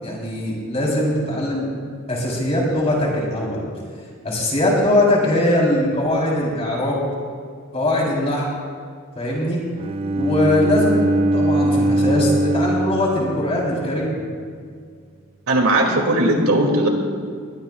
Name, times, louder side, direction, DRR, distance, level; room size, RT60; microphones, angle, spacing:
voice 1, 0.0-1.7 2.1-3.6 4.2-7.0 7.7-8.5 9.2-9.6 10.1-11.0 11.3-14.2, left 1 dB, 30° left, -3 dB, 4.0 m, -21 dB
Bowed string instrument, 9.8-13.9, right 1 dB, 25° right, 0.3 m, -21 dB
voice 2, 15.5-16.9, right 1 dB, 90° right, 1 dB, 2.7 m, -18 dB
21.5 x 21.0 x 2.5 m, 2.1 s
head